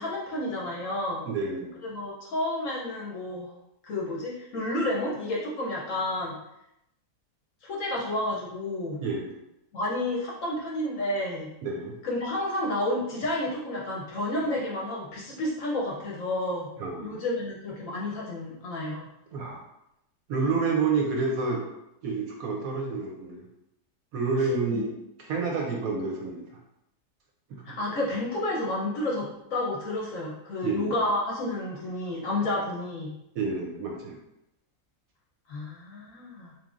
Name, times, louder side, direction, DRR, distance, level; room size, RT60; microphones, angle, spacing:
voice 1, 0.0-1.2 1.9-3.5 3.8-6.4 7.6-9.0 9.7-11.5 12.0-16.7 17.0-19.1 24.7-24.9 27.6-33.1 35.5-36.5, left 1 dB, 60° left, -3 dB, 0.9 m, -30 dB
voice 2, 1.3-1.8 9.0-9.3 11.6-11.9 16.8-17.2 19.3-19.6 20.3-21.6 22.0-23.4 24.1-24.8 25.2-26.4 27.5-27.6 30.6-31.0 33.3-34.2, right 4 dB, 70° right, 0 dB, 0.9 m, -29 dB
3.9 x 3.1 x 2.4 m, 0.84 s
omnidirectional pair, 1.8 m